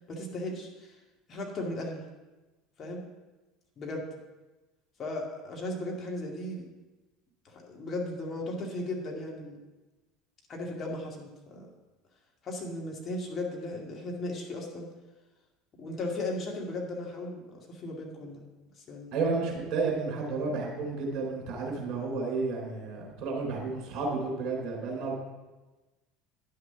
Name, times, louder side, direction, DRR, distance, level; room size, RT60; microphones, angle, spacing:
voice 1, 0.1-0.9 1.3-2.0 2.8-3.0 3.8-4.1 5.0-6.6 7.4-9.6 10.5-11.7 12.4-14.9 15.8-18.4 18.9-19.1, left 2 dB, 35° left, -1 dB, 2.2 m, -36 dB
voice 2, 19.1-25.1, right 4 dB, 45° right, 0 dB, 3.5 m, -31 dB
10.0 x 6.6 x 5.8 m, 1.2 s
figure-of-eight pair, 65°, 0 cm